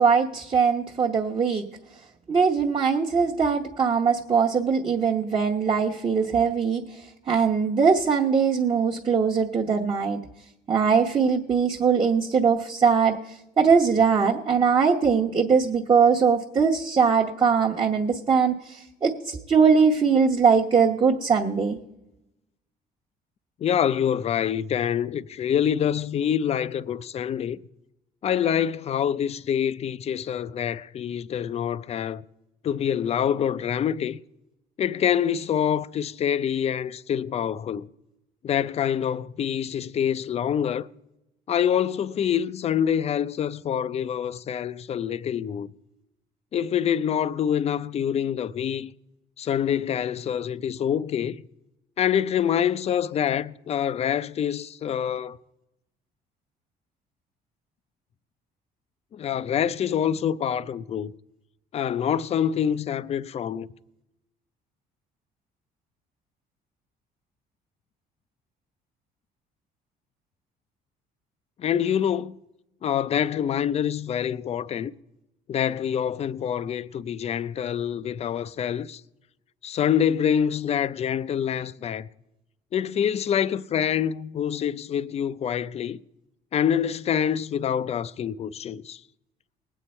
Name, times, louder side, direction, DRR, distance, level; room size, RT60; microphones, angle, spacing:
voice 1, 0.0-1.7 2.3-10.2 10.7-21.8, right 6 dB, 30° right, 1.0 m, -21 dB
voice 2, 23.6-27.6 28.2-32.2 32.6-34.2 34.8-37.9 38.4-40.9 41.5-45.7 46.5-48.9 49.4-51.4 52.0-55.4 59.1-61.1 61.7-63.7 71.6-72.3 72.8-74.9 75.5-79.0 79.6-82.1 82.7-86.0 86.5-89.0, left 9 dB, 40° left, 0.4 m, -26 dB
19.5 x 8.3 x 4.3 m
cardioid pair, 110°, 17 cm